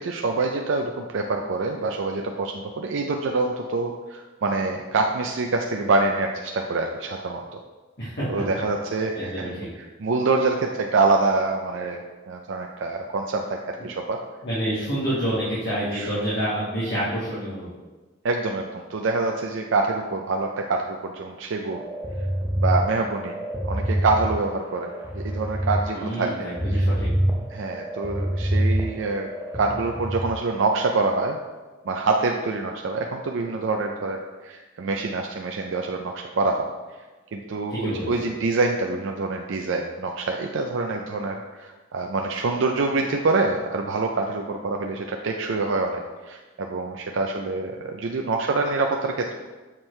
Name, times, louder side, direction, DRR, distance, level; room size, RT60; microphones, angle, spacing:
voice 1, 0.0-7.6 8.3-14.2 15.9-16.1 18.2-21.8 22.6-26.9 27.5-31.4 31.9-36.7 37.3-49.3, right 3 dB, 75° right, 2 dB, 0.4 m, -26 dB
voice 2, 8.0-8.4 9.1-9.7 14.4-17.7 25.9-27.1 37.7-38.1, right 1 dB, 55° left, -10 dB, 1.7 m, -28 dB
sound 1, 21.7-30.3, right 1 dB, 10° right, 0.6 m, -26 dB
7.3 x 4.5 x 3.2 m, 1.3 s
head